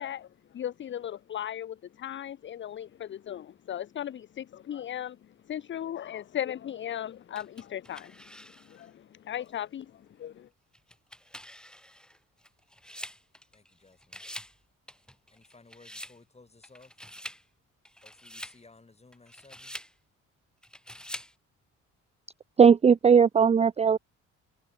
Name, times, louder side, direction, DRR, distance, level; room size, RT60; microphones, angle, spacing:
voice 1, 0.0-10.5, left 10 dB, 40° left, 0.5 m, -37 dB
sound 1, 7.3-8.9 9.4-9.5 10.7-13.7 14.0-14.6 14.9-16.2 16.6-17.4 17.8-18.6 19.1-19.9 20.6-21.3, equal, 5° left, 6.9 m, -45 dB
voice 2, 13.5-14.2 15.3-17.0 18.0-19.7, left 3 dB, 20° left, 5.0 m, -57 dB
voice 3, 22.6-24.0, right 6 dB, 20° right, 0.4 m, -18 dB
cardioid pair, 90°, 30 cm